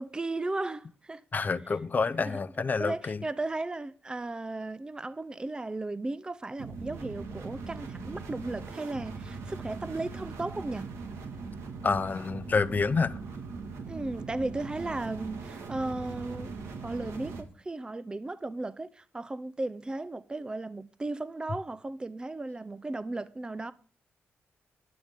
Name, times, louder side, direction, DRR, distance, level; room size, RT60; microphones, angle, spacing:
voice 1, 0.0-1.2 2.2-2.4 2.8-10.9 13.9-16.5 16.8-23.7, right 2 dB, 20° right, 0.6 m, -35 dB
voice 2, 1.3-3.2 11.8-13.1, left 4 dB, 40° left, 0.7 m, -28 dB
sound 1, 6.6-17.4, right 4 dB, 85° right, 1.8 m, -40 dB
14.0 x 11.0 x 3.5 m
cardioid pair, 90°, 5 cm